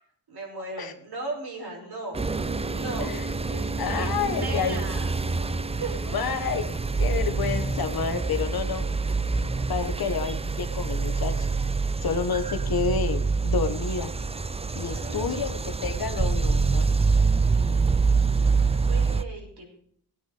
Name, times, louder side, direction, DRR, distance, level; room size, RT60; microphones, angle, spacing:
voice 1, 0.3-2.2 2.6-3.2 3.5-4.1 4.4-5.1 5.8-6.1 14.8-15.4 17.5-19.9, right 2 dB, 65° right, 0 dB, 5.7 m, -38 dB
sound 1, 2.1-19.2, right 4 dB, 15° right, 0.5 m, -26 dB
voice 2, 3.8-4.8 6.1-6.6 7.0-8.8 9.7-11.3 12.0-14.1 14.7-16.9, left 6 dB, 60° left, 8 dB, 1.5 m, -29 dB
18.0 x 9.2 x 5.1 m, 0.63 s
wide cardioid pair, 120°, 42 cm